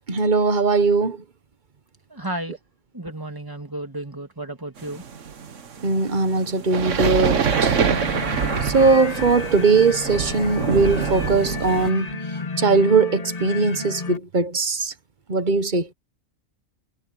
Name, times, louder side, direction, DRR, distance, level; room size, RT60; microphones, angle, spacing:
voice 1, 0.1-1.2 5.8-7.8 8.6-12.2 12.6-14.9 15.3-15.9, right 4 dB, 40° right, 1.2 m, -20 dB
voice 2, 2.1-2.6 2.9-5.0, right 1 dB, 15° right, 2.7 m, -33 dB
sound 1, 4.8-11.9, right 7 dB, 65° right, 1.5 m, -25 dB
sound 2, 7.5-14.2, left 4 dB, 30° left, 1.6 m, -32 dB
omnidirectional pair, 1.4 m